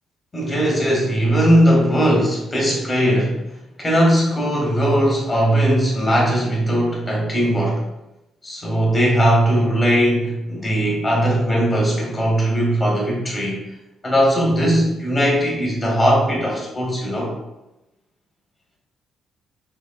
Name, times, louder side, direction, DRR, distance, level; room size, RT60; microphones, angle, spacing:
voice 1, 0.3-3.4 3.8-7.8 8.4-13.6 14.0-17.3, equal, 20° left, -2 dB, 1.4 m, -19 dB
6.3 x 2.3 x 2.3 m, 0.94 s
cardioid pair, 90°, 0 cm